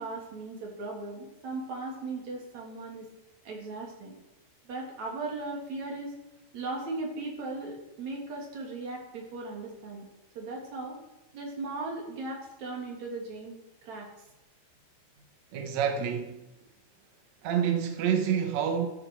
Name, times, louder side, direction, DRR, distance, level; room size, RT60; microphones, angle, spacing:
voice 1, 0.0-3.1 3.4-4.1 4.7-6.1 6.5-10.1 10.4-11.0 11.3-14.1, right 3 dB, 45° right, 3.8 m, -37 dB
voice 2, 15.5-16.4 17.4-18.9, right 8 dB, 75° right, 1.6 m, -28 dB
14.0 x 13.5 x 4.7 m
omnidirectional pair, 5.1 m